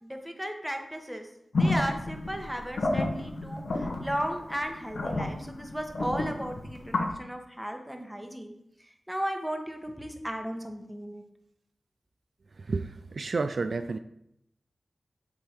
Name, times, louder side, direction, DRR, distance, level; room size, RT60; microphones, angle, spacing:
voice 1, 0.0-1.3 1.5-8.5 8.8-11.2, equal, 5° right, 4 dB, 1.2 m, -35 dB
sound 1, 1.5-7.1, left 2 dB, 80° left, 1.0 m, -31 dB
voice 2, 12.6-14.0, right 3 dB, 70° right, 9 dB, 0.3 m, -31 dB
7.5 x 3.6 x 4.5 m, 0.76 s
cardioid pair, 45°, 0 cm